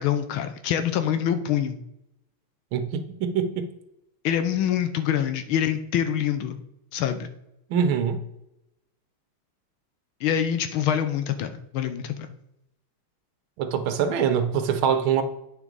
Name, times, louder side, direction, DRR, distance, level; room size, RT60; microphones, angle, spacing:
voice 1, 0.0-1.8 4.2-6.6 6.9-7.3 10.2-12.1, left 9 dB, 80° left, 1.5 m, -25 dB
voice 2, 2.7-3.7 7.7-8.2 13.6-15.2, right 7 dB, 80° right, 1.7 m, -24 dB
8.8 x 6.0 x 3.9 m
omnidirectional pair, 2.3 m